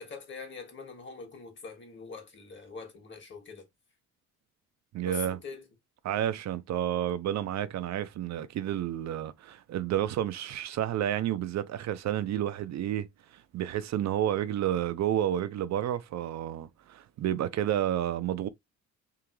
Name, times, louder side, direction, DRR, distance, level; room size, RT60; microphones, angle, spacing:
voice 1, 0.0-3.7 5.0-5.6 6.1-6.2, left 4 dB, 40° left, 1.8 m, -43 dB
voice 2, 4.9-5.4 6.0-13.1 13.3-18.5, right 11 dB, 65° right, 0.6 m, -30 dB
3.7 x 2.9 x 3.0 m
cardioid pair, 90°, 30 cm